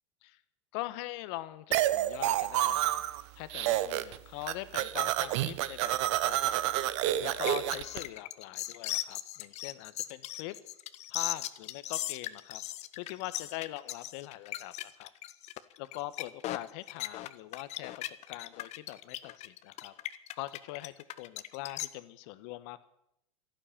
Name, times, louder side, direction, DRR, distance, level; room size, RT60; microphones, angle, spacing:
voice 1, 0.7-3.0 3.4-6.6 7.2-10.6 11.1-12.6 13.0-15.1 15.8-19.9 20.3-22.8, left 17 dB, 55° left, 14 dB, 1.2 m, -42 dB
sound 1, 1.7-3.2 3.5-4.2 4.4-8.0, right 14 dB, 60° right, 1.0 m, -29 dB
sound 2, 7.5-21.9, left 14 dB, 40° left, 1.0 m, -38 dB
12.5 x 12.0 x 8.7 m, 0.81 s
hypercardioid pair, 90°, 17 cm